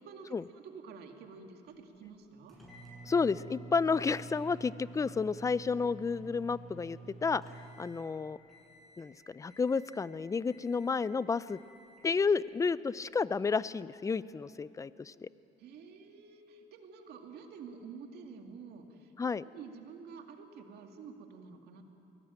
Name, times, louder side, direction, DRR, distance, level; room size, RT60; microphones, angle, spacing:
voice 1, 0.0-2.6 15.6-19.1 19.4-21.8, right 5 dB, 70° right, 4 dB, 2.4 m, -49 dB
sound 1, 2.5-8.1 8.5-9.1 9.5-10.1 10.5-11.1 11.5-12.1, right 4 dB, ahead, 7.5 m, -50 dB
voice 2, 3.0-7.4 7.8-8.4 9.0-11.6 12.0-15.3 19.2-19.4, left 5 dB, 20° left, 18 dB, 0.5 m, -31 dB
23.0 x 18.0 x 9.0 m, 2.8 s
cardioid pair, 110°, 17 cm